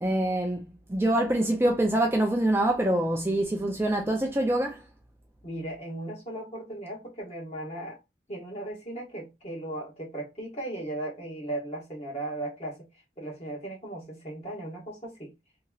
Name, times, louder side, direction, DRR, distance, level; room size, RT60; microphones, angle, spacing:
voice 1, 0.0-4.8, right 1 dB, 15° right, 0.4 m, -25 dB
voice 2, 5.4-8.0 8.3-12.8 13.2-15.3, right 1 dB, 35° left, 1.2 m, -37 dB
2.9 x 2.8 x 2.3 m
head